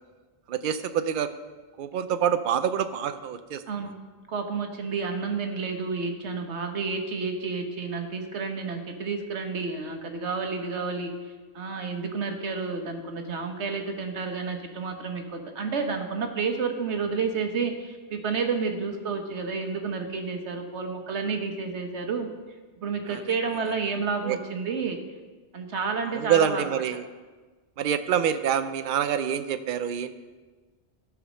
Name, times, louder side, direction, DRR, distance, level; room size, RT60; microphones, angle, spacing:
voice 1, 0.5-1.3 1.8-3.6 23.1-23.2 24.2-24.4 26.0-27.1 27.8-30.1, right 9 dB, 55° right, 11 dB, 0.7 m, -26 dB
voice 2, 4.3-11.1 11.5-22.3 22.8-25.0 25.5-26.7, right 5 dB, 85° right, 5 dB, 1.4 m, -30 dB
13.5 x 4.9 x 6.3 m, 1.3 s
omnidirectional pair, 1.1 m